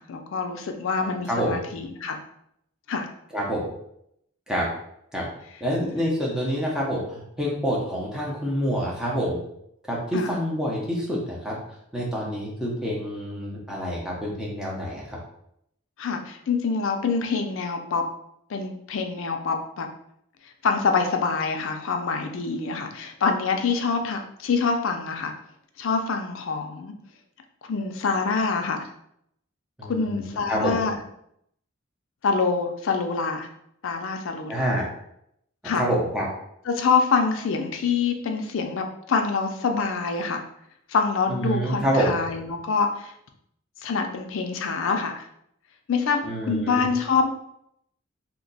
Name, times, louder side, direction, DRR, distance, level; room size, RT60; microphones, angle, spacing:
voice 1, 0.0-2.2 2.9-3.1 10.1-10.3 16.0-18.0 18.5-19.9 20.6-25.3 25.8-26.9 27.7-28.9 29.9-31.0 32.2-33.5 33.8-34.8 35.6-35.8 36.7-40.4 40.9-43.1 43.8-45.2 45.9-47.4, left 5 dB, 65° left, 5 dB, 0.4 m, -25 dB
voice 2, 1.0-1.6 3.3-3.6 4.5-4.7 5.1-5.3 5.6-9.4 9.9-11.6 11.9-15.2 29.8-30.8 34.5-34.9 35.7-36.3 41.3-42.2 46.2-46.9, equal, 5° right, -4 dB, 0.6 m, -27 dB
2.8 x 2.2 x 3.9 m, 0.75 s
head